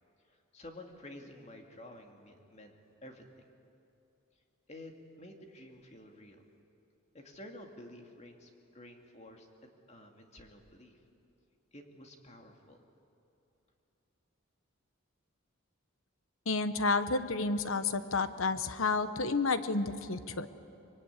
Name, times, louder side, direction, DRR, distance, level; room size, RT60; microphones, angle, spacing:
voice 1, 0.3-2.7 3.0-3.5 4.7-6.4 7.1-11.0 11.7-12.8, left 1 dB, 30° left, 3 dB, 2.4 m, -51 dB
voice 2, 16.5-20.5, left 3 dB, 70° left, 11 dB, 1.1 m, -30 dB
24.5 x 23.0 x 9.8 m, 2.8 s
head